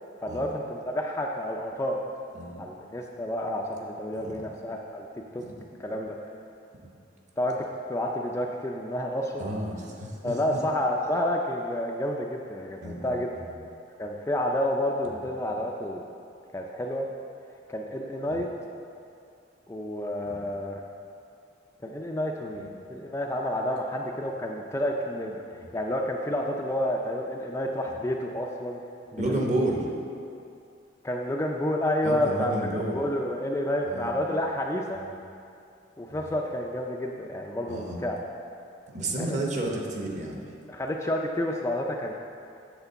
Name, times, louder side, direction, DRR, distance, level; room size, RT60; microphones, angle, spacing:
voice 1, 0.2-2.0 2.6-5.1 5.3-5.4 5.8-6.2 7.4-9.4 10.2-13.3 14.0-16.0 16.5-17.1 17.7-18.5 19.7-20.8 21.8-25.4 25.7-28.8 29.1-29.5 31.0-35.0 36.0-38.2 39.1-39.4 40.7-42.1, left 1 dB, 15° left, 0 dB, 0.3 m, -30 dB
voice 2, 2.3-2.6 4.2-4.4 5.4-5.7 6.8-6.9 9.4-10.6 12.8-13.1 13.5-13.6 15.0-15.2 18.3-18.4 22.6-22.7 29.2-29.8 32.0-33.0 33.9-34.1 35.0-35.1 37.7-38.0 38.9-40.4, right 1 dB, 40° right, -1 dB, 1.0 m, -31 dB
8.1 x 3.7 x 6.8 m, 2.5 s
head